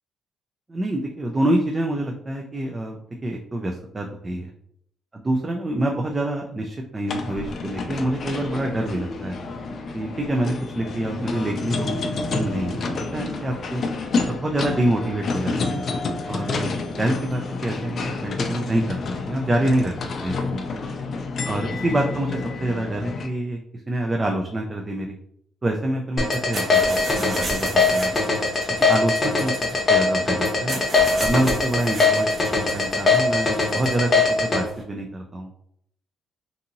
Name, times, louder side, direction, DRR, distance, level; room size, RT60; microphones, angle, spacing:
voice 1, 0.7-4.5 5.1-9.4 9.9-13.8 14.3-15.8 16.3-16.7 17.0-19.0 19.3-20.0 20.2-20.8 21.4-23.6 23.9-25.1 25.6-28.2 28.8-30.8 31.2-35.5, right 1 dB, 25° right, 1 dB, 0.3 m, -26 dB
sound 1, 7.1-23.3, left 3 dB, 55° left, 0.4 m, -29 dB
sound 2, 26.2-34.6, left 4 dB, 35° left, 0.8 m, -20 dB
sound 3, 26.2-34.8, right 2 dB, 45° right, 0.8 m, -35 dB
2.7 x 2.6 x 2.6 m, 0.71 s
cardioid pair, 90°, 0 cm